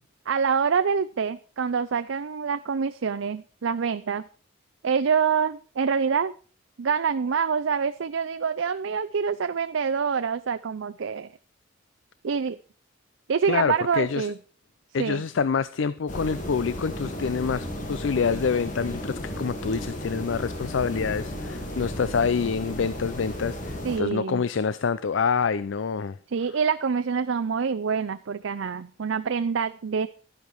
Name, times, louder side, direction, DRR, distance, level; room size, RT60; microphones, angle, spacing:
voice 1, 0.3-4.2 4.8-6.3 6.8-11.3 12.2-12.6 13.3-14.4 15.0-15.2 23.8-24.4 26.3-30.1, right 6 dB, 85° right, 0.5 m, -26 dB
voice 2, 13.5-14.3 14.9-26.2, left 5 dB, 80° left, 0.5 m, -26 dB
sound 1, 16.1-24.0, left 1 dB, 40° left, 2.7 m, -34 dB
12.0 x 10.5 x 4.6 m
head